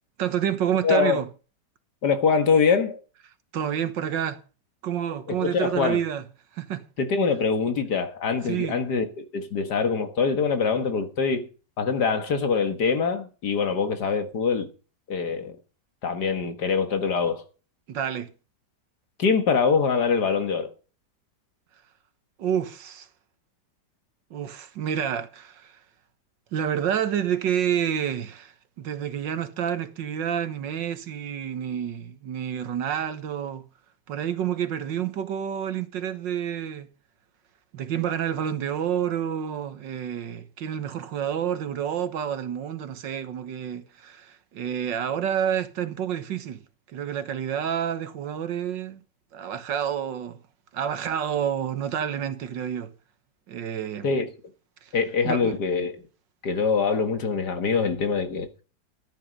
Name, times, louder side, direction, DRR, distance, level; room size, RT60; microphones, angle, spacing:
voice 1, 0.2-1.3 3.5-4.4 4.8-6.2 6.5-6.8 8.5-8.8 17.9-18.3 22.4-23.1 24.3-25.8 26.5-33.6 34.1-36.9 37.7-46.6 46.9-49.0 49.3-50.4 50.7-52.9 53.5-54.1 54.8-54.9 55.2-55.6, right 9 dB, 90° right, 1.9 m, -29 dB
voice 2, 0.8-1.2 2.0-3.0 5.3-6.0 7.0-11.5 11.8-14.7 15.1-15.6 16.0-17.4 19.2-20.7 54.0-54.3 54.9-55.9 56.4-58.5, left 5 dB, 65° left, 2.2 m, -24 dB
13.5 x 10.0 x 5.3 m
omnidirectional pair, 1.9 m